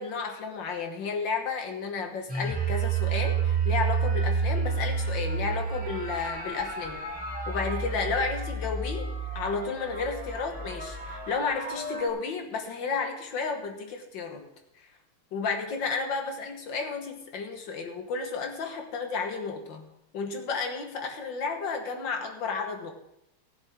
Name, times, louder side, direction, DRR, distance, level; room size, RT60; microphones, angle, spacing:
voice 1, 0.0-7.0 7.5-14.5 15.3-19.9 20.1-22.9, left 4 dB, 65° left, 4 dB, 2.1 m, -32 dB
sound 1, 2.3-12.1, right 5 dB, 5° right, 1.9 m, -30 dB
15.0 x 11.0 x 3.7 m, 0.80 s
omnidirectional pair, 2.3 m